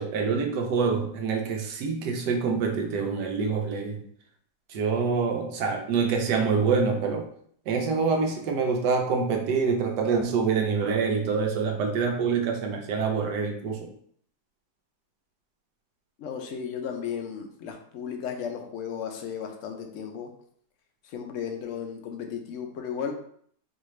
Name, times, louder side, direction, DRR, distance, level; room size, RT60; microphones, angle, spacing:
voice 1, 0.0-4.1 4.7-7.3 7.7-13.9, right 5 dB, 80° right, 2 dB, 1.3 m, -26 dB
voice 2, 16.2-20.3 21.0-23.1, left 7 dB, 65° left, 4 dB, 0.8 m, -35 dB
4.6 x 2.6 x 3.1 m, 0.63 s
omnidirectional pair, 1.8 m